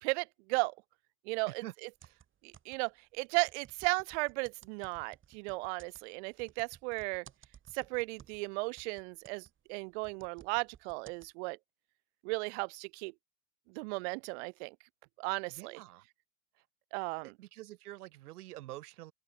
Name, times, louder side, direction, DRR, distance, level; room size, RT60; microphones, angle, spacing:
voice 1, 0.0-0.7 1.3-1.9 2.4-7.2 7.7-11.6 12.2-13.1 13.7-14.7 15.2-15.8 16.9-17.3, right 29 dB, 50° right, 0.5 m, -35 dB
sound 1, 1.9-3.0 3.4-8.5 8.8-11.3, right 9 dB, 25° right, 6.7 m, -58 dB
voice 2, 15.5-16.0 17.2-19.1, right 16 dB, 80° right, 3.3 m, -47 dB
open air
supercardioid pair, 135°, 44 cm